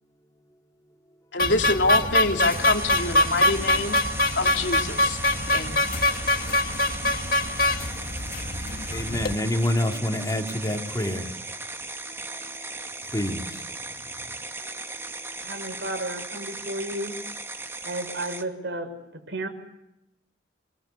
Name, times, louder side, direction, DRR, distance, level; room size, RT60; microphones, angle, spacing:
voice 1, 1.3-4.0 4.3-5.2 5.5-5.8, left 2 dB, 75° left, 3.2 m, -26 dB
sound 1, 1.4-9.3, left 1 dB, 55° left, 2.0 m, -24 dB
sound 2, 2.4-18.4, right 2 dB, 15° right, 2.2 m, -37 dB
voice 2, 8.9-11.3 13.1-13.6, left 1 dB, 20° left, 3.0 m, -27 dB
voice 3, 15.4-17.2 17.8-19.5, right 1 dB, 70° right, 6.3 m, -33 dB
27.5 x 22.5 x 8.4 m
head